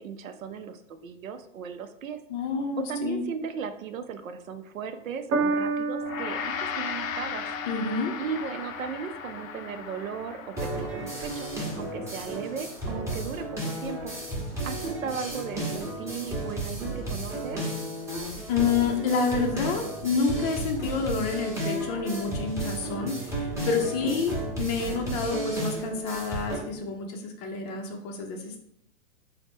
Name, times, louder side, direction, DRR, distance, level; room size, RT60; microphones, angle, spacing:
voice 1, 0.0-2.2 2.9-7.4 8.2-11.5 11.8-13.5 13.8-14.1 14.6-17.6 24.0-24.3, right 6 dB, 80° right, 9 dB, 0.6 m, -36 dB
voice 2, 2.3-3.2 7.7-8.2 18.5-28.6, left 5 dB, 30° left, 3 dB, 0.5 m, -28 dB
Piano, 5.3-11.9 12.7-12.8, right 4 dB, 25° right, 0.4 m, -34 dB
Gong, 6.0-15.4, left 7 dB, 80° left, 0.6 m, -38 dB
sound 1, 10.6-26.6, right 1 dB, 5° right, 0.8 m, -33 dB
3.9 x 2.1 x 3.5 m, 0.71 s
hypercardioid pair, 120°, 40 cm